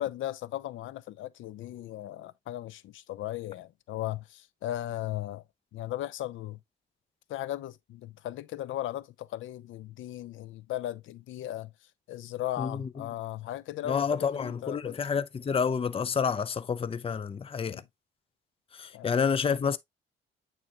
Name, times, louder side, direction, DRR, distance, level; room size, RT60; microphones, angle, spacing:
voice 1, 0.0-5.4 5.7-6.6 7.3-11.7 12.1-15.0 17.6-17.8 18.9-19.3, left 13 dB, 80° left, 0.6 m, -37 dB
voice 2, 12.6-12.9 13.9-17.8 18.7-19.8, left 6 dB, 30° left, 0.6 m, -29 dB
8.7 x 4.0 x 2.9 m
cardioid pair, 90°, 20 cm